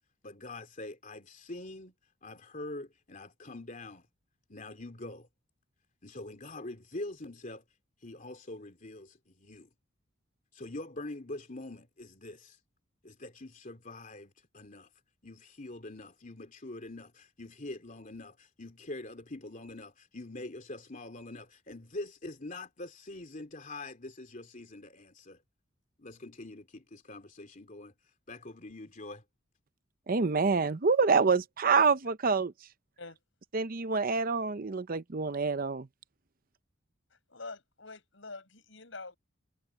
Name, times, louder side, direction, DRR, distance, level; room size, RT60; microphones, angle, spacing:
voice 1, 0.2-1.9 2.2-4.1 4.5-5.3 6.0-7.6 8.0-9.7 10.5-12.6 13.0-14.9 15.2-25.4 26.0-27.9 28.3-29.2, left 2 dB, 40° left, 3.0 m, -44 dB
voice 2, 30.1-32.5 33.5-35.9, right 4 dB, 45° right, 0.7 m, -27 dB
voice 3, 37.1-39.2, left 3 dB, 70° left, 7.8 m, -46 dB
head